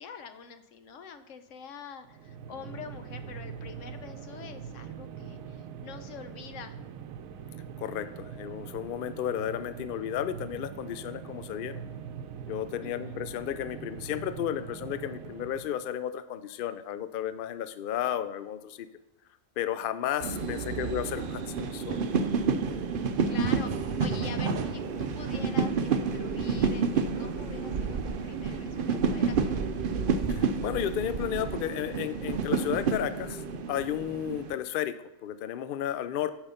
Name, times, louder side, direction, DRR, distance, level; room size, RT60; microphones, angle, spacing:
voice 1, 0.0-6.7 12.8-13.2 20.4-20.7 23.1-29.6, left 6 dB, 65° left, 10 dB, 1.0 m, -45 dB
sound 1, 2.0-15.9, right 7 dB, 75° right, 1.0 m, -42 dB
voice 2, 7.8-11.8 12.5-18.9 19.6-22.0 30.3-33.4 33.7-36.3, left 10 dB, 80° left, 12 dB, 0.4 m, -33 dB
sound 2, 20.2-34.6, right 5 dB, 55° right, 0.6 m, -29 dB
8.7 x 5.0 x 5.6 m, 0.98 s
omnidirectional pair, 1.5 m